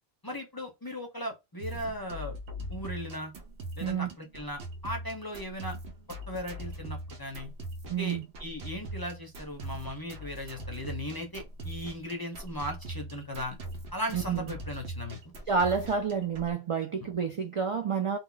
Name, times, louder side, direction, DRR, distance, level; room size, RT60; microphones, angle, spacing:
voice 1, 0.2-2.3 2.7-3.3 3.8-5.8 6.1-7.5 8.0-13.6 13.9-15.2, equal, 30° left, 0.4 m, -37 dB
sound 1, 1.6-16.5, right 1 dB, 85° right, 0.9 m, -41 dB
voice 2, 7.9-8.3 14.1-14.5 15.5-18.2, right 6 dB, 60° right, 0.3 m, -29 dB
2.3 x 2.1 x 3.7 m
omnidirectional pair, 1.1 m